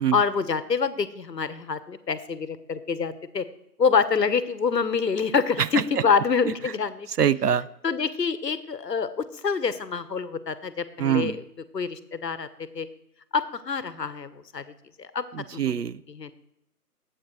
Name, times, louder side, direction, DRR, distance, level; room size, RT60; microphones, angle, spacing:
voice 1, 0.1-3.4 3.8-7.1 7.8-11.4 11.7-12.5 12.7-12.9 13.3-14.6 15.0-15.2 15.5-15.8 16.1-16.3, left 5 dB, 85° left, 13 dB, 1.1 m, -26 dB
voice 2, 7.2-7.7 11.0-11.4 15.3-16.0, right 9 dB, 75° right, 17 dB, 0.6 m, -23 dB
20.5 x 8.6 x 3.2 m, 0.84 s
figure-of-eight pair, 180°, 48 cm